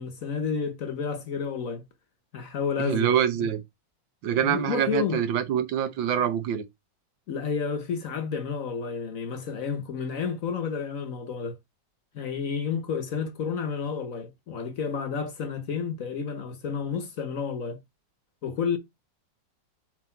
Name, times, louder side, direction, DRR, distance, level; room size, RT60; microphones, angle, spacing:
voice 1, 0.0-1.9 2.3-3.5 4.3-5.2 7.3-11.6 12.1-17.8 18.4-18.8, left 6 dB, 55° left, 1.1 m, -31 dB
voice 2, 2.8-3.6 4.2-6.6, right 9 dB, 90° right, 1.7 m, -25 dB
7.4 x 3.1 x 4.3 m
omnidirectional pair, 2.0 m